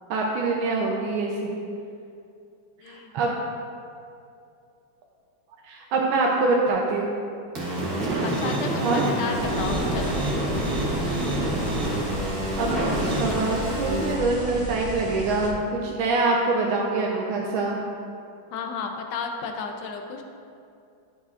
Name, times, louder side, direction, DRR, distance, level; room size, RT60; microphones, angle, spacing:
voice 1, 0.1-1.6 2.9-3.3 5.6-7.1 8.8-9.1 12.6-12.9 13.2-17.8, right 3 dB, 80° right, -1 dB, 1.4 m, -25 dB
sound 1, 7.6-14.1, right 1 dB, 50° right, 1.7 m, -27 dB
voice 2, 8.2-10.2 18.5-20.2, left 5 dB, 70° left, 4 dB, 1.2 m, -32 dB
sound 2, 9.3-15.5, left 1 dB, 45° left, 1.5 m, -34 dB
11.0 x 6.1 x 2.4 m, 2.5 s
omnidirectional pair, 2.2 m